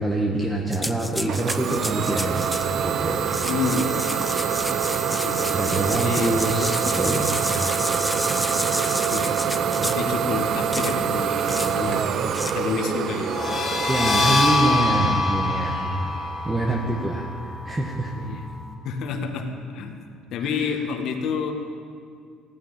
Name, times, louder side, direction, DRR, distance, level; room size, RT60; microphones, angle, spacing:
voice 1, 0.0-2.5 2.8-3.3 5.5-7.3 13.9-15.8 16.4-18.1 20.4-20.5, right 1 dB, 15° right, -1 dB, 1.4 m, -25 dB
sound 1, 0.7-2.7 3.2-10.1 10.7-11.0 11.5-11.8 12.3-12.5, left 1 dB, 5° left, 0.5 m, -31 dB
Idling / Domestic sounds home sounds, 1.3-16.8, right 8 dB, 50° right, 0.7 m, -26 dB
voice 2, 3.5-4.2 5.2-6.7 9.1-9.4 9.8-12.1 12.4-13.3 16.9-17.0 18.2-18.5 18.8-20.0 20.3-21.5, left 5 dB, 60° left, 4 dB, 1.7 m, -29 dB
sound 2, 13.2-18.7, left 2 dB, 30° left, 2.8 m, -25 dB
15.5 x 10.0 x 8.8 m, 2.2 s
cardioid pair, 130°, 0 cm